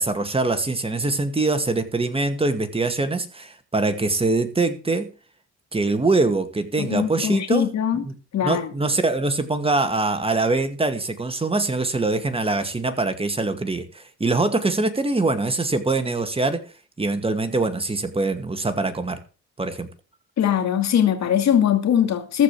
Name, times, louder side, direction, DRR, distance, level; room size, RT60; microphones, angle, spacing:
voice 1, 0.0-5.1 5.7-8.1 8.4-16.6 17.0-19.2 19.6-19.9, right 3 dB, 20° right, 2.2 m, -23 dB
voice 2, 6.8-8.0 8.3-8.7 20.4-22.4, left 9 dB, 65° left, 2.5 m, -21 dB
14.5 x 5.3 x 7.7 m
cardioid pair, 90°, 30 cm